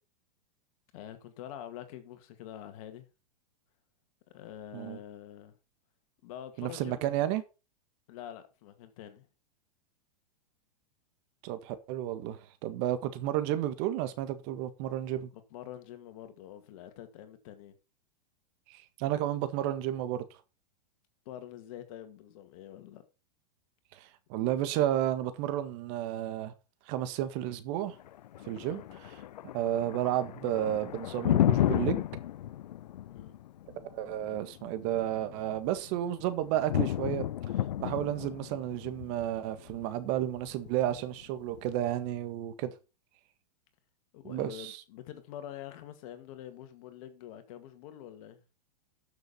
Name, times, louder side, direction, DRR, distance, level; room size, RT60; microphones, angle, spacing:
voice 1, 0.9-3.1 4.3-5.6 6.2-7.1 8.1-9.3 15.3-17.7 21.3-23.0 28.6-28.9 33.1-33.3 44.1-48.4, left 11 dB, 55° left, 2.3 m, -46 dB
voice 2, 6.6-7.4 11.4-15.3 18.7-20.2 23.9-26.5 26.9-27.9 28.4-29.1 29.5-32.1 33.7-37.2 37.8-42.7 44.2-44.8, right 12 dB, 50° right, 1.6 m, -32 dB
Thunder, 27.9-41.9, left 12 dB, 80° left, 0.4 m, -33 dB
13.0 x 6.7 x 4.4 m
hypercardioid pair, 115°, 21 cm